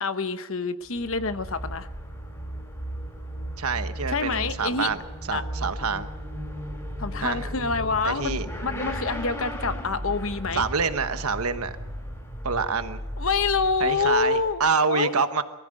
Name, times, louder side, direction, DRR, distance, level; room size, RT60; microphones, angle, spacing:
voice 1, 0.0-1.9 4.1-4.9 5.3-5.4 7.0-10.6 13.2-14.6 14.9-15.1, left 4 dB, 60° left, 11 dB, 1.0 m, -27 dB
Motorcycle / Accelerating revving vroom, 0.8-14.7, equal, 15° left, 4.3 m, -35 dB
voice 2, 3.6-5.0 5.3-6.1 7.2-7.4 8.0-8.5 10.5-11.7 12.4-13.0 13.8-15.4, right 5 dB, 75° right, 10 dB, 1.2 m, -26 dB
23.0 x 15.0 x 7.8 m, 1.1 s
head